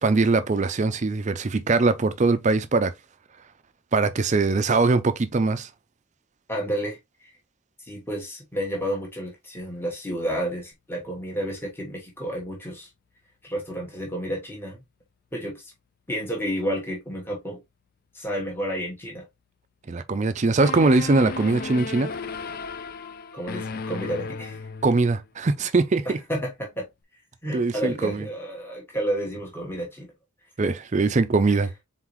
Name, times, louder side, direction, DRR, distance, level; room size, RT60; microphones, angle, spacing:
voice 1, 0.0-2.9 3.9-5.7 19.9-22.1 24.8-26.2 27.5-28.2 30.6-31.7, right 3 dB, 35° right, 0.4 m, -22 dB
voice 2, 6.5-7.3 7.8-12.9 13.4-14.8 15.3-15.7 16.1-17.6 18.1-19.2 23.3-24.7 26.3-26.9 27.4-30.1 31.5-31.6, equal, 10° left, 1.1 m, -31 dB
sound 1, 20.6-25.2, left 4 dB, 45° left, 0.3 m, -34 dB
3.9 x 3.8 x 3.0 m
head